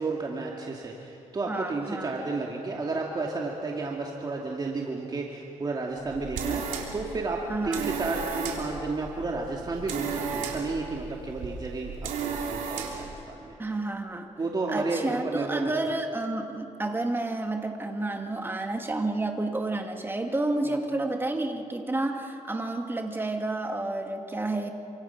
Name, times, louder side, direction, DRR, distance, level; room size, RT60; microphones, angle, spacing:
voice 1, 0.0-11.9 12.2-13.5 14.4-15.6, right 3 dB, 30° right, -1 dB, 2.5 m, -32 dB
voice 2, 1.5-2.1 7.5-7.9 13.6-14.3 14.7-24.7, right 2 dB, 15° right, 3 dB, 2.4 m, -30 dB
sound 1, 6.0-13.1, right 6 dB, 85° right, 3.5 m, -34 dB
27.5 x 26.0 x 6.0 m, 2.7 s
cardioid pair, 95°, 13 cm